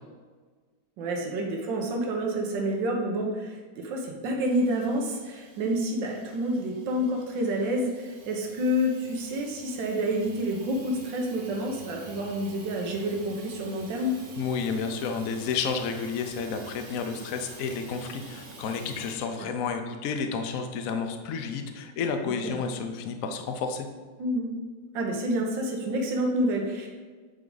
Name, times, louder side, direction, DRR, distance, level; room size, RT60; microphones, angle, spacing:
voice 1, 1.0-14.2 19.4-19.5 22.2-22.6 24.2-24.5 24.9-26.9, equal, 80° right, 0 dB, 1.7 m, -28 dB
Hiss / Toilet flush / Trickle dribble, 4.4-19.2, right 3 dB, 40° right, 1.0 m, -48 dB
voice 2, 14.4-23.9, left 5 dB, 65° left, 6 dB, 0.9 m, -31 dB
8.5 x 4.5 x 3.9 m, 1.4 s
omnidirectional pair, 2.0 m